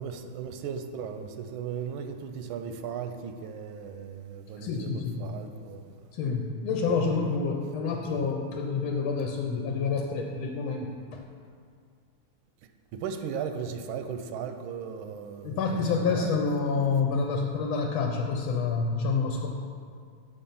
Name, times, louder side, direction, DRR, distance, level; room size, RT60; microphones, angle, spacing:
voice 1, 0.0-5.9 12.9-15.6 16.0-16.4, right 7 dB, 85° right, 1.4 m, -37 dB
voice 2, 4.6-5.2 6.1-11.2 15.4-19.5, left 4 dB, 90° left, 1.5 m, -28 dB
6.9 x 5.6 x 5.5 m
omnidirectional pair, 2.2 m